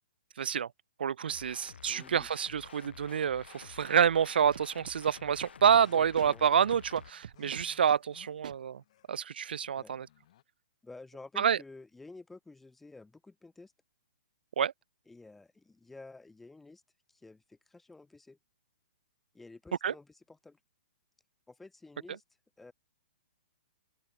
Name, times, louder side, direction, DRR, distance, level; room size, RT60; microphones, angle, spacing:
voice 1, 0.4-0.7 1.0-8.8 9.1-10.1 11.4-11.6 14.6-14.7 19.8-19.9, right 8 dB, 70° right, 0.7 m, -28 dB
sound 1, 1.3-7.1, left 7 dB, 85° left, 6.6 m, -51 dB
voice 2, 1.9-2.3 5.7-6.4 9.8-9.9 10.8-13.7 15.1-16.8 17.1-18.4 19.3-20.6 21.5-22.2 22.6-22.7, left 3 dB, 5° left, 0.5 m, -52 dB
Scratching (performance technique), 4.5-5.8 6.2-6.3 6.7-8.0 8.4-8.6, right 9 dB, 50° right, 1.9 m, -45 dB
sound 2, 5.3-9.3 9.6-10.4, left 13 dB, 35° left, 4.6 m, -63 dB
open air
hypercardioid pair, 175°, 6 cm